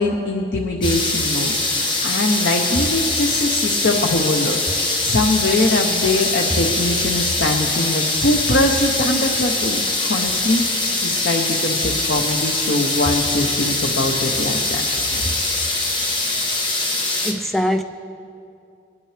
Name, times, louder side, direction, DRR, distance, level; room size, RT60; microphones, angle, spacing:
voice 1, 0.0-1.5 2.0-14.8, left 2 dB, 85° left, 2 dB, 0.9 m, -22 dB
sound 1, 0.8-17.3, left 2 dB, 25° left, 1.2 m, -22 dB
voice 2, 17.2-17.8, equal, ahead, 6 dB, 0.4 m, -23 dB
21.5 x 11.0 x 3.3 m, 2.6 s
head